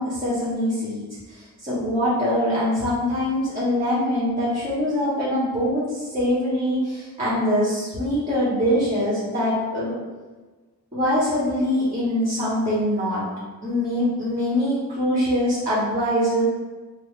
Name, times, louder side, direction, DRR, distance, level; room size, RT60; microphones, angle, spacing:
voice 1, 0.0-9.9 10.9-13.3 13.6-16.4, equal, 20° right, -9 dB, 1.2 m, -23 dB
3.6 x 2.1 x 3.2 m, 1.3 s
cardioid pair, 70°, 39 cm